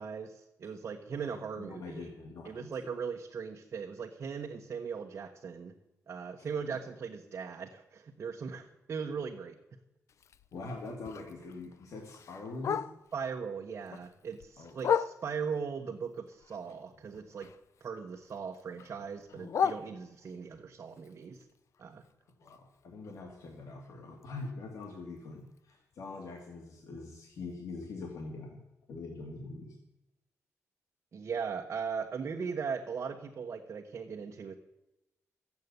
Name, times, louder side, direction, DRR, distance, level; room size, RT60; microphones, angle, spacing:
voice 1, 0.0-2.0 2.4-5.7 6.1-9.6 13.1-17.5 17.8-21.4 21.8-22.0 31.1-34.5, right 6 dB, 50° right, 1 dB, 1.2 m, -39 dB
voice 2, 1.1-2.9 6.4-6.5 10.5-12.8 14.6-14.7 22.4-28.6 28.9-29.8, left 3 dB, 80° left, 1 dB, 2.1 m, -43 dB
Bark, 10.1-13.3 13.7-15.6 16.0-17.9 18.1-20.5 20.9-24.8 25.2-25.3 25.6-25.9 26.4-26.5 26.8-26.9 27.4-27.5, left 7 dB, 65° left, 0.5 m, -37 dB
14.5 x 8.4 x 8.1 m, 0.92 s
wide cardioid pair, 125°, 6 cm